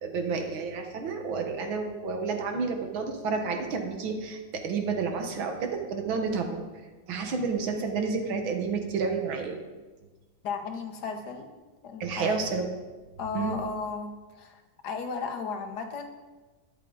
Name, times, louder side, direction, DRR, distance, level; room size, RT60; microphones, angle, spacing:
voice 1, 0.0-6.6 7.1-9.6 12.0-12.7 13.3-13.6, right 4 dB, 80° right, 4 dB, 2.1 m, -30 dB
voice 2, 10.4-11.5 11.8-12.5 13.2-16.1, left 5 dB, 60° left, 6 dB, 1.4 m, -35 dB
12.5 x 10.5 x 4.0 m, 1.3 s
omnidirectional pair, 2.2 m